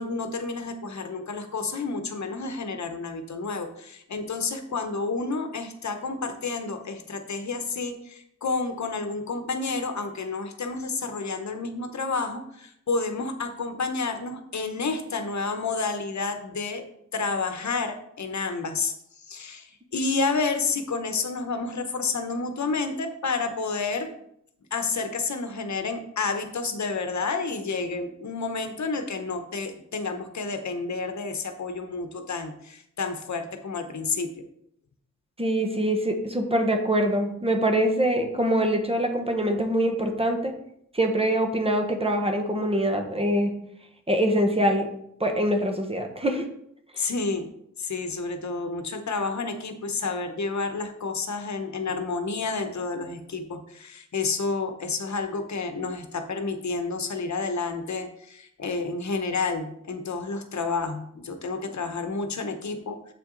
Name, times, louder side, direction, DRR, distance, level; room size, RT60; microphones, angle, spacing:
voice 1, 0.0-16.8 17.1-18.9 19.3-24.1 24.7-34.3 47.0-47.5 47.8-63.1, left 4 dB, 65° left, 7 dB, 0.9 m, -30 dB
voice 2, 35.4-40.5 40.9-43.5 44.1-44.9 45.2-46.4 47.0-47.1, right 1 dB, 20° right, 4 dB, 1.1 m, -24 dB
7.7 x 5.9 x 3.9 m, 0.73 s
wide cardioid pair, 125°, 30 cm